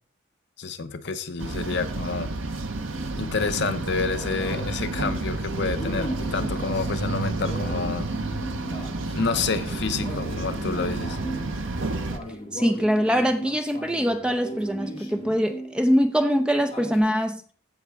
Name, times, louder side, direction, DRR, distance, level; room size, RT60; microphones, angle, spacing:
voice 1, 0.6-2.3 3.2-8.1 9.1-11.2, left 4 dB, 55° left, 0.7 m, -29 dB
sound 1, 1.4-12.2, right 2 dB, 70° right, 0.9 m, -30 dB
sound 2, 2.9-16.0 16.3-17.0, right 1 dB, 30° left, 2.4 m, -37 dB
voice 2, 12.5-17.4, equal, 5° right, 0.6 m, -23 dB
15.0 x 5.5 x 3.5 m
head